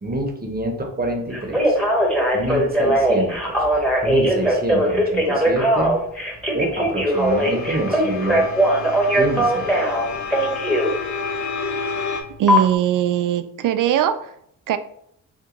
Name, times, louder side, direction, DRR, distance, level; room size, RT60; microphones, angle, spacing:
voice 1, 0.0-1.8 2.3-5.9 6.5-8.4 9.1-9.7, right 1 dB, 25° right, 3 dB, 1.0 m, -26 dB
Telephone, 1.3-10.9 12.5-12.6, equal, 5° left, 1.1 m, -20 dB
sound 1, 7.1-12.2, left 5 dB, 50° left, 0.7 m, -30 dB
voice 2, 12.4-14.3 14.7-14.8, right 10 dB, 55° right, 11 dB, 0.4 m, -20 dB
3.0 x 2.5 x 3.9 m, 0.69 s
supercardioid pair, 60°, 38 cm